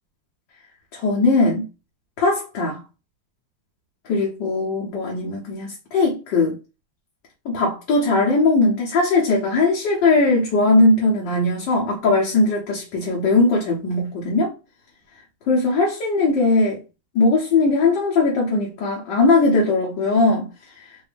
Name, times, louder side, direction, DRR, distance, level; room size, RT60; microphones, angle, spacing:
voice 1, 0.9-1.7 2.2-2.8 4.0-6.6 7.4-14.5 15.5-16.8 17.1-20.5, left 3 dB, 65° left, 1.4 m, -19 dB
3.9 x 2.6 x 3.2 m
omnidirectional pair, 2.3 m